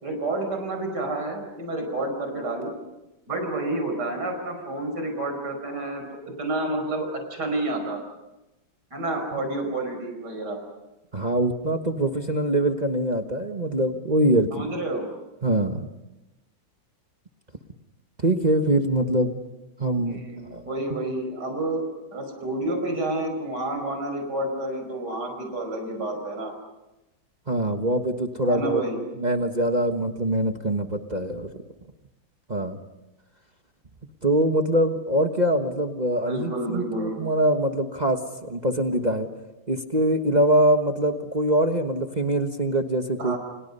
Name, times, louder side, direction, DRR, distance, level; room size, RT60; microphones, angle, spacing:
voice 1, 0.0-2.7 3.3-6.0 6.4-8.0 8.9-10.6 14.5-15.1 20.1-21.8 22.1-26.5 28.4-29.0 36.3-37.2 43.2-43.4, right 2 dB, 55° right, 4 dB, 5.7 m, -29 dB
voice 2, 11.1-14.7 15.4-15.9 18.2-19.4 19.8-20.2 20.5-21.1 27.5-28.8 29.2-31.6 32.5-32.8 34.2-39.3 39.7-43.4, right 1 dB, 25° right, 5 dB, 1.1 m, -23 dB
29.0 x 29.0 x 5.5 m, 1.0 s
omnidirectional pair, 2.2 m